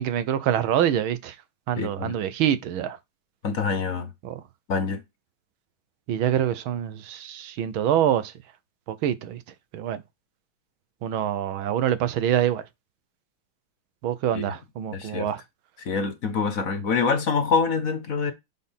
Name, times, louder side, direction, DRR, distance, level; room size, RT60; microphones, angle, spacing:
voice 1, 0.0-1.4 1.7-3.0 4.2-4.4 6.1-8.3 8.9-9.4 9.7-10.0 11.0-12.6 14.0-15.4, right 10 dB, 90° right, 1.7 m, -25 dB
voice 2, 1.8-2.2 3.4-4.1 4.7-5.0 14.3-14.4 14.9-15.3 15.8-18.3, left 5 dB, 50° left, 1.3 m, -25 dB
7.5 x 4.4 x 5.6 m
omnidirectional pair, 2.2 m